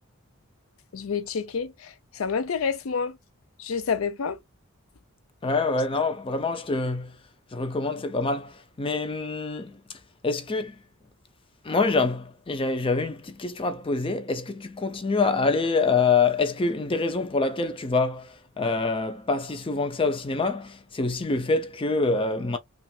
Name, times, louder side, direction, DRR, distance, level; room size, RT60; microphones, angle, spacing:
voice 1, 0.9-3.2 3.6-4.4, left 6 dB, 70° left, 0.5 m, -28 dB
voice 2, 5.4-7.2 7.5-9.8 10.2-10.8 11.6-22.6, left 3 dB, 25° left, 0.5 m, -26 dB
5.5 x 2.4 x 2.3 m
head